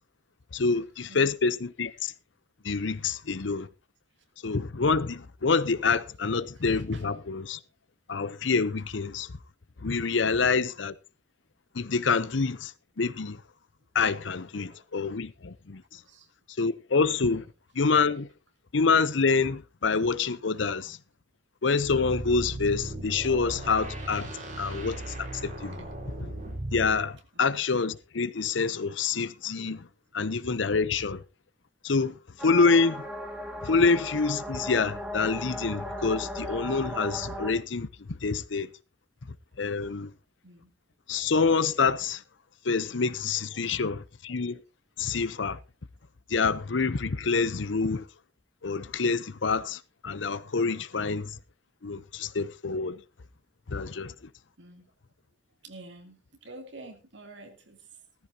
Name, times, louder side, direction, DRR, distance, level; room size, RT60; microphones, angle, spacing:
voice 1, 0.5-2.1 2.6-3.7 4.4-7.6 8.1-9.3 9.8-10.9 11.7-12.7 13.0-13.4 13.9-15.8 16.6-17.4 17.8-18.3 18.7-21.0 21.6-24.3 24.6-25.9 26.2-26.3 26.7-29.9 30.1-31.2 31.8-32.2 32.4-33.1 33.6-38.7 39.6-40.1 41.1-42.2 42.6-44.6 45.0-45.6 46.3-48.1 48.6-51.4 51.8-53.0 53.7-54.1, left 4 dB, 80° left, 0.8 m, -27 dB
voice 2, 6.6-7.0 10.1-10.6 14.5-14.8 15.9-16.3 17.3-17.4 25.7-25.8 27.3-27.4 40.4-40.7 43.5-43.6 54.6-54.9 55.6-57.9, right 2 dB, 75° right, 2.9 m, -49 dB
sound 1, 21.8-27.0, right 1 dB, 45° right, 4.8 m, -37 dB
sound 2, 32.4-37.5, equal, 5° right, 2.7 m, -36 dB
16.5 x 14.0 x 2.8 m
head